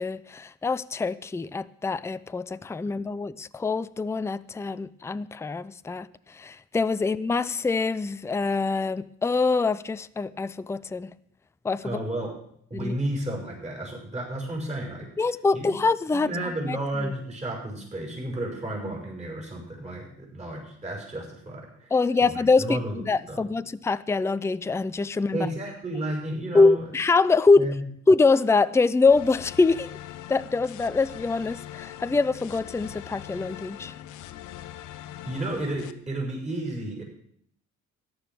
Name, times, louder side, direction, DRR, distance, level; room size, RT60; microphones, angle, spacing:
voice 1, 0.0-6.1 6.3-11.1 11.6-12.0 12.7-12.9 15.2-16.3 16.7-16.8 17.0-17.1 21.9-25.4 26.5-27.7 28.1-29.9 30.3-33.9, left 3 dB, 10° left, 14 dB, 0.5 m, -24 dB
voice 2, 11.8-12.4 12.7-15.2 15.5-15.8 16.1-23.4 25.3-26.9 27.6-27.8 35.2-37.0, right 1 dB, 20° right, 1 dB, 5.7 m, -32 dB
sound 1, 29.1-35.9, left 12 dB, 80° left, 0.8 m, -42 dB
14.0 x 10.5 x 6.1 m, 0.68 s
cardioid pair, 90°, 30 cm